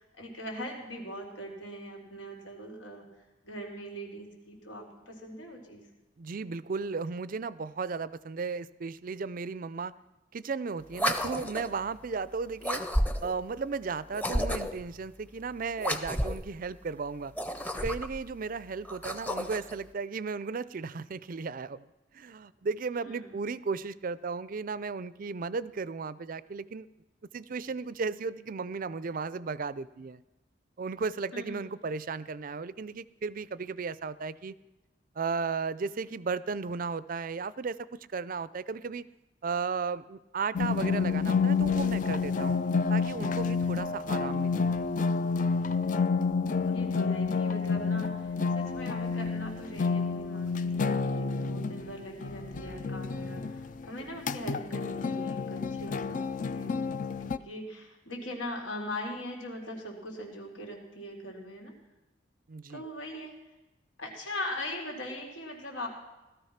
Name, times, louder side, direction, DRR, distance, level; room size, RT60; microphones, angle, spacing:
voice 1, 0.0-3.0 3.4-5.8 23.0-23.4 31.3-31.6 46.7-61.7 62.7-63.3 64.0-65.9, equal, 90° left, 0 dB, 4.0 m, -41 dB
voice 2, 6.2-9.9 10.3-12.8 13.2-17.3 17.7-21.9 22.1-26.9 27.3-30.2 30.8-34.5 35.2-37.8 38.1-39.1 39.4-42.6 42.9-44.7 62.5-62.8, right 4 dB, 45° right, 17 dB, 0.5 m, -35 dB
sound 1, 10.9-11.8 12.6-13.4 14.1-14.9 15.8-16.5 17.2-18.2 18.8-19.8, equal, 10° left, 0.8 m, -31 dB
sound 2, 40.6-57.4, left 5 dB, 40° left, 0.4 m, -29 dB
17.5 x 13.0 x 5.8 m, 1.0 s
head